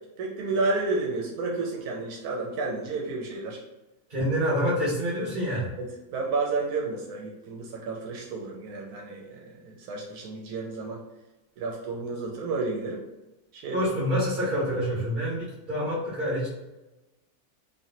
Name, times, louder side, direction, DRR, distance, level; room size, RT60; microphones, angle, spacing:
voice 1, 0.2-3.6 5.8-11.0 11.6-13.0 13.5-13.8, right 3 dB, 85° right, -2 dB, 1.1 m, -31 dB
voice 2, 4.1-5.7 13.7-16.5, equal, 35° right, -7 dB, 1.5 m, -27 dB
3.2 x 2.5 x 2.6 m, 1.0 s
omnidirectional pair, 1.6 m